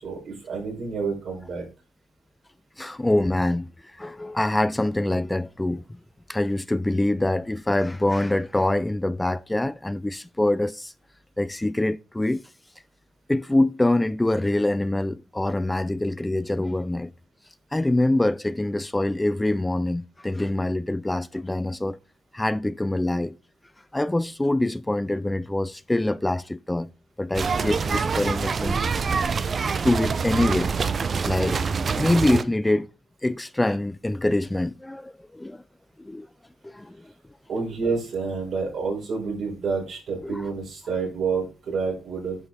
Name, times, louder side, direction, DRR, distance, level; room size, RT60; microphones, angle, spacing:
voice 1, 0.0-1.6 37.5-42.4, right 4 dB, 60° right, 4.9 m, -29 dB
voice 2, 2.8-6.0 6.3-10.9 11.4-12.4 13.3-17.1 17.7-22.0 22.3-23.3 23.9-26.9 27.2-28.8 29.8-30.7 31.2-31.6 32.0-32.9 33.2-35.6 36.0-36.3 36.6-37.1 40.2-40.5, left 1 dB, 10° left, 0.3 m, -25 dB
sound 1, 27.3-32.4, right 5 dB, 40° right, 0.5 m, -25 dB
9.8 x 5.6 x 3.4 m
cardioid pair, 90°, 0 cm